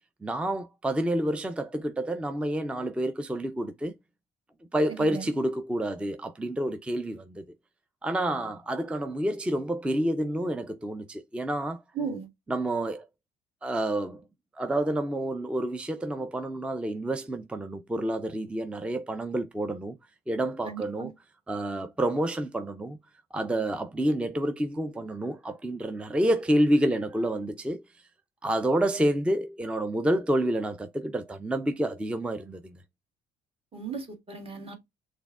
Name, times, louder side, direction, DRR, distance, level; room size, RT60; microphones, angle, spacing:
voice 1, 0.2-3.9 4.7-7.4 8.0-11.8 12.5-13.1 13.6-14.2 14.6-20.0 20.3-21.1 21.5-23.0 23.3-27.8 28.4-32.8, right 1 dB, 5° right, 0.4 m, -28 dB
voice 2, 5.0-5.3 11.9-12.3 20.6-21.1 33.7-34.8, right 5 dB, 35° right, 1.8 m, -36 dB
6.1 x 3.6 x 2.3 m
cardioid pair, 110°, 17 cm